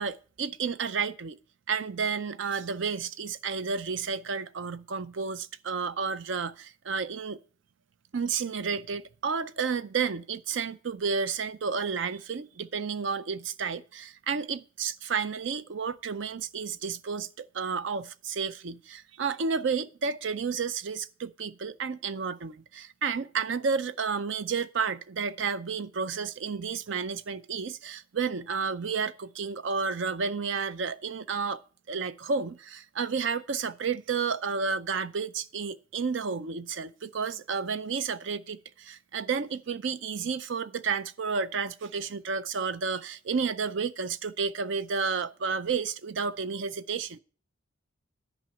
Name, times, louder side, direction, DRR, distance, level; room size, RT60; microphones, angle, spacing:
voice 1, 0.0-1.4 1.7-7.4 8.1-31.6 31.9-47.2, right 5 dB, 65° right, 0.5 m, -31 dB
10.5 x 5.3 x 7.6 m
head